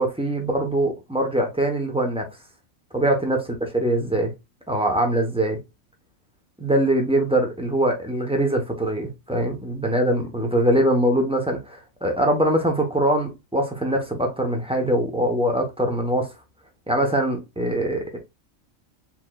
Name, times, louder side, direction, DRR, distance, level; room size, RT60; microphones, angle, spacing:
voice 1, 0.0-2.3 2.9-4.3 4.7-5.6 6.6-16.3 16.9-18.2, right 1 dB, 5° right, 0.7 m, -23 dB
4.5 x 3.1 x 2.3 m
omnidirectional pair, 1.4 m